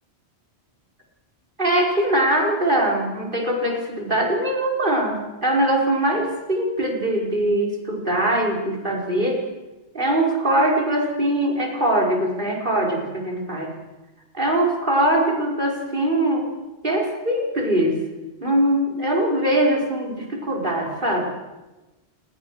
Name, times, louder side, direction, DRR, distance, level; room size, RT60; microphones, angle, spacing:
voice 1, 1.6-9.4 9.9-13.7 14.3-16.5 16.8-18.0 18.4-21.2, right 1 dB, 50° right, 0 dB, 5.4 m, -22 dB
30.0 x 19.5 x 6.6 m, 1.1 s
omnidirectional pair, 1.1 m